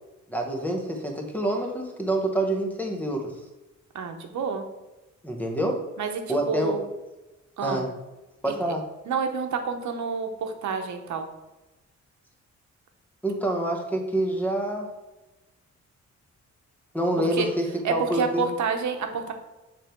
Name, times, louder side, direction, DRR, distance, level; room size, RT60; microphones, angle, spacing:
voice 1, 0.3-3.3 5.2-5.8 6.3-6.8 7.6-7.9 8.4-8.8 13.2-14.9 16.9-18.5, right 1 dB, 5° left, 2 dB, 0.9 m, -27 dB
voice 2, 3.9-4.6 6.0-6.8 7.6-7.9 9.1-11.3 17.2-17.5 17.8-19.3, right 5 dB, 75° right, 5 dB, 0.9 m, -28 dB
7.4 x 3.4 x 4.4 m, 1.1 s
wide cardioid pair, 145°, 29 cm